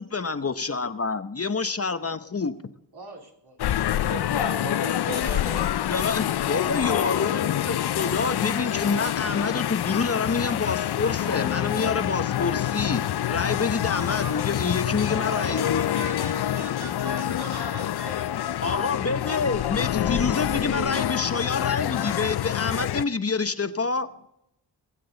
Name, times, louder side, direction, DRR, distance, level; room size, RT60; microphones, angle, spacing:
voice 1, 0.0-2.6 5.9-15.8 18.6-24.1, left 4 dB, 35° left, 11 dB, 0.8 m, -27 dB
voice 2, 2.9-3.6 3.8-4.2 13.9-19.6 20.5-21.1, right 3 dB, 60° right, 0 dB, 3.1 m, -40 dB
sound 1, 3.6-23.0, left 12 dB, 65° left, 0.5 m, -27 dB
voice 3, 3.9-6.0, right 5 dB, 90° right, 3 dB, 1.8 m, -37 dB
sound 2, 6.8-10.4 11.2-15.0 15.5-23.5, left 8 dB, 80° left, 0.9 m, -36 dB
22.5 x 7.6 x 3.9 m, 0.79 s
cardioid pair, 60°, 44 cm